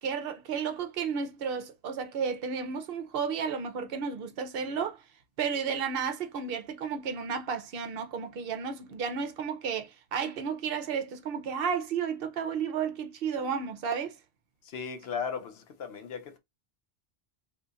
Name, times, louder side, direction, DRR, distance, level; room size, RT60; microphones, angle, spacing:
voice 1, 0.0-5.0 5.4-14.2, right 6 dB, 55° right, 0.8 m, -32 dB
voice 2, 14.7-15.5 15.8-16.4, left 6 dB, 65° left, 0.8 m, -35 dB
2.7 x 2.4 x 3.9 m
omnidirectional pair, 1.3 m